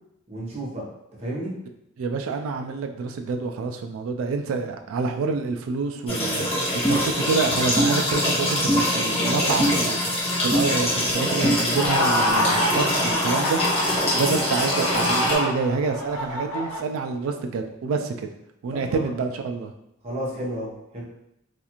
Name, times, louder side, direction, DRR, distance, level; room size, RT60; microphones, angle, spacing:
voice 1, 0.3-0.8 1.2-1.5 18.7-19.0 20.0-21.0, right 1 dB, 30° right, -6 dB, 0.8 m, -32 dB
voice 2, 2.0-6.6 6.9-13.8 14.1-18.3 18.6-19.7, right 4 dB, 80° right, 5 dB, 0.3 m, -27 dB
sound 1, 6.1-15.4, left 1 dB, 30° left, 0.8 m, -24 dB
sound 2, 6.8-7.0 7.8-7.9 8.7-8.8 9.6-9.7 10.5-10.7 11.4-11.6, right 1 dB, ahead, 0.3 m, -21 dB
sound 3, 11.7-16.8, left 1 dB, 85° left, 0.4 m, -26 dB
2.5 x 2.4 x 2.8 m, 0.82 s
head